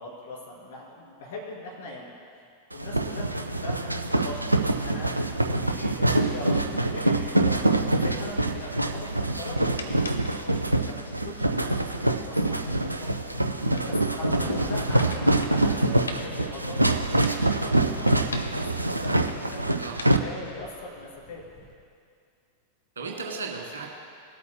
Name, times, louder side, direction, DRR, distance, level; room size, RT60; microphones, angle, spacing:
voice 1, 0.0-2.1 2.7-5.1 5.4-7.6 8.0-11.7 11.9-19.6 20.0-21.4, left 2 dB, 60° left, -2 dB, 2.8 m, -41 dB
sound 1, 2.7-20.2, right 2 dB, 85° right, 0.5 m, -25 dB
voice 2, 6.2-6.6 19.8-20.1 22.9-23.9, right 4 dB, 70° right, 0 dB, 1.7 m, -36 dB
Thunder / Rain, 8.2-21.7, equal, 15° left, 2.4 m, -45 dB
sound 2, 9.1-20.6, left 2 dB, 75° left, 0.7 m, -44 dB
20.0 x 8.4 x 2.2 m, 2.3 s
figure-of-eight pair, 90°, 0 cm